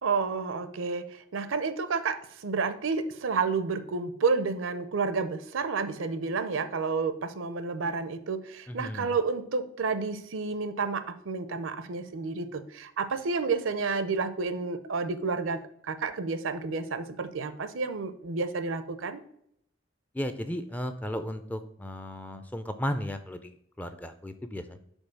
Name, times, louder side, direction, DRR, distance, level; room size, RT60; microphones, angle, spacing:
voice 1, 0.0-19.2, right 4 dB, 75° right, 12 dB, 0.6 m, -30 dB
voice 2, 8.7-9.1 20.1-24.8, equal, 10° left, 9 dB, 0.3 m, -35 dB
5.3 x 4.0 x 6.0 m, 0.71 s
head